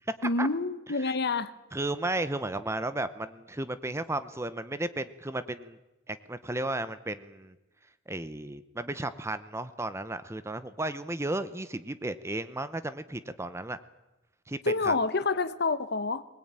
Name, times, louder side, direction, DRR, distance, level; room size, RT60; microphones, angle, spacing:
voice 1, 0.2-1.5 14.6-16.2, left 3 dB, 55° left, 1.1 m, -28 dB
voice 2, 1.7-5.8 6.1-7.5 8.1-13.8 14.5-14.6 14.8-14.9, right 2 dB, 15° right, 0.8 m, -34 dB
22.5 x 20.0 x 8.9 m
head